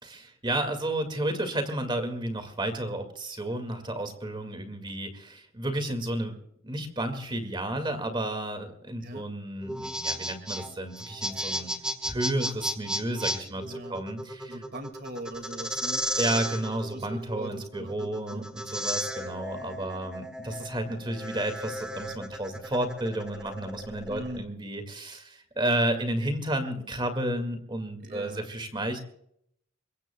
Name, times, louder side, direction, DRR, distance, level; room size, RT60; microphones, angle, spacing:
voice 1, 0.0-6.3 6.6-11.7 12.1-14.6 16.2-29.0, right 1 dB, 25° right, 8 dB, 2.1 m, -32 dB
sound 1, 9.6-24.4, equal, 5° right, 1.6 m, -34 dB
voice 2, 13.6-14.0 14.5-16.1 16.9-18.5 24.1-24.5 28.0-28.5, right 1 dB, 50° right, 9 dB, 2.1 m, -41 dB
23.0 x 23.0 x 2.3 m, 0.70 s
head